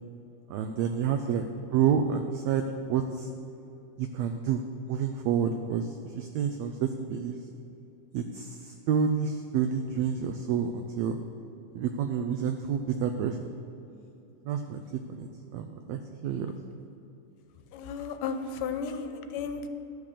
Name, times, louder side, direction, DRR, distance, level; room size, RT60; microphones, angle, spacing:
voice 1, 0.5-1.5 1.7-3.3 4.0-4.6 4.9-7.4 8.1-11.2 11.7-13.5 14.5-14.8 15.1-15.3 15.5-16.5, right 7 dB, 85° right, 6 dB, 1.5 m, -29 dB
voice 2, 17.7-19.7, left 5 dB, 85° left, 7 dB, 2.3 m, -34 dB
12.0 x 6.4 x 6.7 m, 2.9 s
omnidirectional pair, 3.7 m